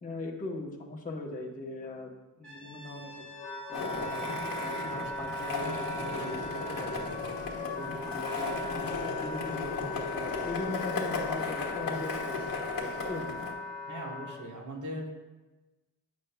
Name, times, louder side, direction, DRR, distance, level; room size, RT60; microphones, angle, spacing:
voice 1, 0.0-2.1 2.4-3.3 3.7-4.3 4.6-7.0 7.6-8.9 9.2-12.5 12.8-13.4, left 2 dB, 20° left, -2 dB, 0.9 m, -40 dB
Brass instrument, 2.4-7.3, right 1 dB, 35° right, 1.9 m, -50 dB
Wind instrument woodwind instrument, 2.8-14.4, left 2 dB, 5° left, 1.2 m, -39 dB
Skateboard, 3.7-13.5, left 4 dB, 65° left, 1.2 m, -36 dB
voice 2, 13.9-15.1, equal, 55° right, 1 dB, 1.3 m, -39 dB
8.3 x 6.4 x 2.2 m, 1.2 s
cardioid pair, 95°, 37 cm